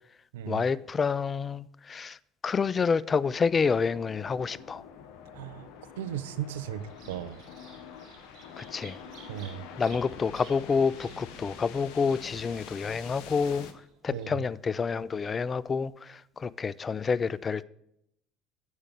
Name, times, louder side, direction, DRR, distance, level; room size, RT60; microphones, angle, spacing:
voice 1, 0.5-2.2 2.4-4.8 8.6-9.0 9.8-13.7 14.0-17.6, left 5 dB, 30° left, 0.3 m, -28 dB
sound 1, 3.1-13.7, left 7 dB, 65° left, 0.8 m, -46 dB
voice 2, 5.3-5.7 6.0-7.4 9.3-9.6 14.1-14.4, right 11 dB, 75° right, 0.5 m, -36 dB
Bird vocalization bird call bird song, 6.8-15.8, right 6 dB, 55° right, 3.6 m, -56 dB
8.0 x 5.1 x 7.5 m
hypercardioid pair, 65°, 0 cm